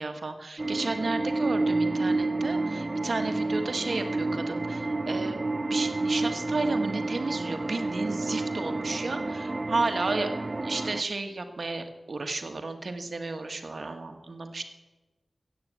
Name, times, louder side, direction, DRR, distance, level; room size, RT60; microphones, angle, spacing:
voice 1, 0.0-5.4 5.7-10.4 10.6-14.6, right 3 dB, 65° right, 6 dB, 1.4 m, -33 dB
sound 1, 0.6-11.0, right 2 dB, 35° right, 0.4 m, -29 dB
15.0 x 8.5 x 8.2 m, 1.2 s
wide cardioid pair, 80°, 0 cm